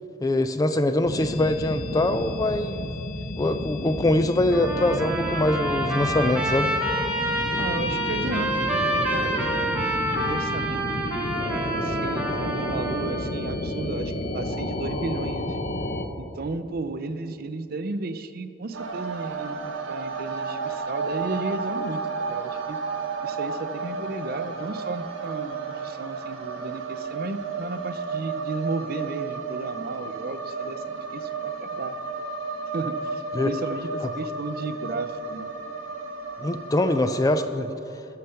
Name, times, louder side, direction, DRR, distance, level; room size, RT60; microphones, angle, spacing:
voice 1, 0.2-2.9 3.4-6.7 33.4-33.5 36.4-37.7, left 1 dB, 20° left, 10 dB, 0.3 m, -23 dB
sound 1, 1.1-16.1, left 1 dB, 45° left, 0.7 m, -31 dB
Trumpet, 4.5-13.3, right 1 dB, 5° right, 1.1 m, -28 dB
voice 2, 7.6-15.6 16.2-22.0 22.3-22.8 23.2-31.9 32.7-35.5, right 3 dB, 50° right, 11 dB, 0.5 m, -34 dB
sound 2, 18.7-37.5, right 4 dB, 80° right, 1.0 m, -32 dB
13.0 x 6.8 x 5.7 m, 2.9 s
head